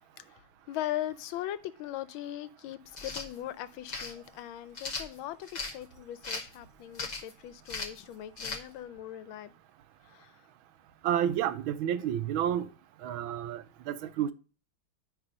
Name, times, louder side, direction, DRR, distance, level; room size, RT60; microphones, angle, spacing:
voice 1, 0.3-9.5 10.1-10.3, left 13 dB, 85° left, 1.4 m, -39 dB
sound 1, 2.9-3.3 3.9-4.1 4.7-5.7 6.2-6.5 6.9-7.3 7.7-8.0 8.4-8.6, left 4 dB, 45° left, 0.5 m, -37 dB
voice 2, 11.0-12.7 13.0-14.3, right 10 dB, 80° right, 1.5 m, -30 dB
9.7 x 3.6 x 5.1 m
omnidirectional pair, 2.2 m